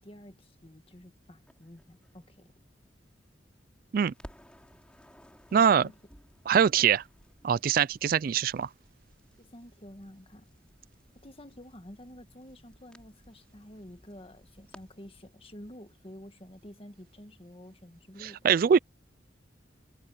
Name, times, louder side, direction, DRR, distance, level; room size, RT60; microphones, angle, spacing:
voice 1, 0.0-2.5 5.5-6.0 6.5-6.6 9.4-10.5 11.1-18.4, equal, 30° left, 1.6 m, -49 dB
Crackle, 1.5-3.6 3.9-15.3, equal, 5° left, 5.2 m, -57 dB
voice 2, 5.5-5.9 6.5-7.0 7.4-8.7 18.2-18.8, right 7 dB, 50° right, 0.3 m, -23 dB
head